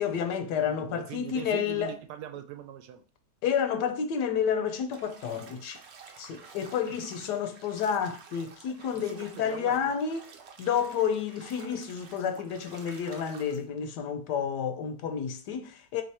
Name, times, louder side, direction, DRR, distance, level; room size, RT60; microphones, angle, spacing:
voice 1, 0.0-1.9 3.4-5.8 6.2-10.3 10.6-16.0, left 7 dB, 85° left, 1.3 m, -30 dB
voice 2, 0.6-3.0 6.9-7.0 8.9-10.0, right 9 dB, 80° right, 1.1 m, -42 dB
Bathtub (filling or washing), 4.9-13.6, right 5 dB, 60° right, 0.7 m, -51 dB
3.8 x 3.2 x 4.2 m
omnidirectional pair, 1.8 m